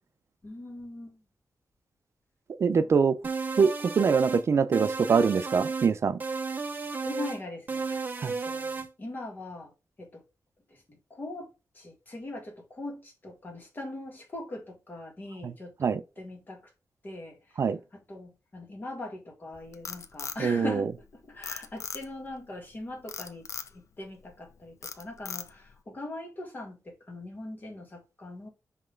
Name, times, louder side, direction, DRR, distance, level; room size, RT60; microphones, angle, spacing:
voice 1, 0.4-1.2 2.8-2.9 7.0-9.7 10.0-10.2 11.1-11.5 11.8-16.6 17.0-17.4 18.1-23.5 23.7-28.5, left 2 dB, 30° left, 1.9 m, -41 dB
voice 2, 2.6-3.1 3.6-6.2 8.2-8.3 15.4-15.5 15.8-16.0 17.6-17.8 20.4-20.8, right 5 dB, 50° right, 0.4 m, -24 dB
sound 1, 3.2-4.4 4.7-5.9 6.2-7.4 7.7-8.9, right 4 dB, 30° right, 0.8 m, -33 dB
Frog, 19.5-21.1 21.4-22.3 23.1-23.7 24.2-24.5 24.8-25.7, left 6 dB, 55° left, 0.6 m, -38 dB
5.8 x 3.2 x 5.1 m
wide cardioid pair, 160°, 6 cm